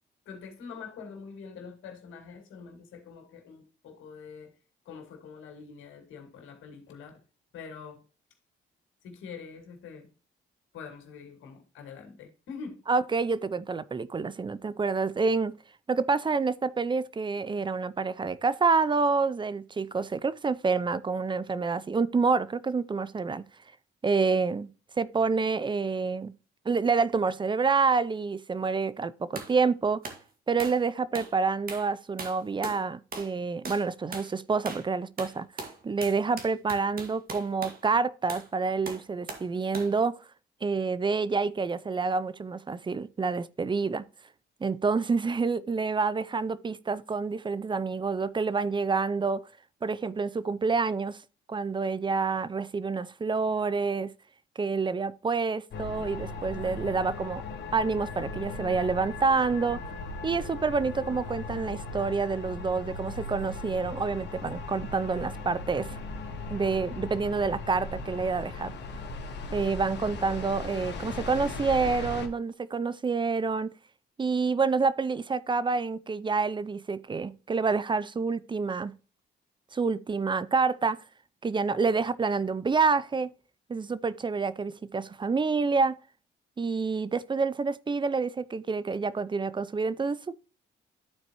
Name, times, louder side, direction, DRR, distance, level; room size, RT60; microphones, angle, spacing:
voice 1, 0.3-4.5 4.8-7.2 7.5-8.0 9.0-10.1 10.7-12.8, left 5 dB, 80° left, 2.3 m, -45 dB
voice 2, 12.9-15.5 15.9-23.4 24.0-24.7 25.0-26.3 26.7-30.0 30.5-35.5 35.8-40.1 40.6-44.0 44.6-49.4 49.8-51.2 51.5-54.1 54.6-57.4 57.7-59.8 60.2-66.0 66.5-68.7 69.5-73.7 74.2-78.9 79.7-81.0 81.4-83.3 83.7-85.9 86.6-90.3, right 4 dB, 25° right, 0.5 m, -28 dB
sound 1, 29.4-29.5 30.0-30.2 30.6-30.8 31.1-31.3 31.7-31.9 32.2-32.8 33.1-33.4 33.6-33.9 34.1-34.3 34.7-34.9 35.2-37.8 38.3-38.5 38.9-39.5 39.7-40.0, right 3 dB, 45° right, 2.0 m, -40 dB
sound 2, 55.7-72.3, left 3 dB, 60° left, 1.6 m, -38 dB
12.5 x 4.5 x 3.0 m
cardioid pair, 90°, 20 cm